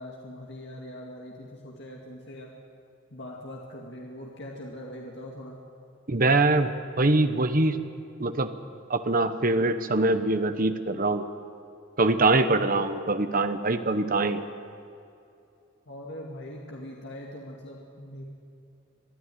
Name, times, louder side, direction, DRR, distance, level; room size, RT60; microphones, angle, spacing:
voice 1, 0.0-2.5 3.1-5.6 15.9-18.2, left 1 dB, 60° left, -2 dB, 2.3 m, -41 dB
voice 2, 6.1-6.7 7.0-7.8 8.2-8.5 8.9-11.2 12.0-14.4, right 2 dB, 45° right, 9 dB, 1.0 m, -23 dB
22.5 x 13.5 x 9.3 m, 2.6 s
head